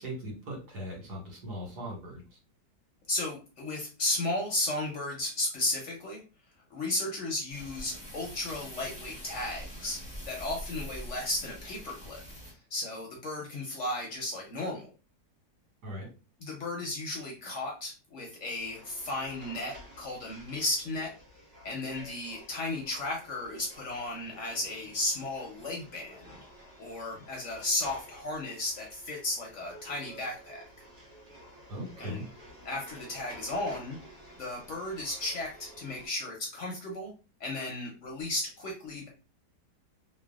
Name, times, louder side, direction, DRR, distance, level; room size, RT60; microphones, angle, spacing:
voice 1, 0.0-2.4 15.8-16.1 31.7-32.2, equal, 80° right, -2 dB, 1.8 m, -39 dB
voice 2, 3.1-6.2 6.7-10.0 10.3-12.2 12.7-14.9 16.4-21.1 21.6-26.4 26.8-30.6 32.0-32.2 32.6-34.0 34.4-37.1 37.4-39.1, left 2 dB, 60° left, 0 dB, 0.8 m, -34 dB
sound 1, 7.5-12.5, equal, 5° right, 0.6 m, -44 dB
sound 2, 18.6-36.1, right 1 dB, 50° right, 1.6 m, -52 dB
3.3 x 2.2 x 2.3 m, 0.33 s
omnidirectional pair, 1.7 m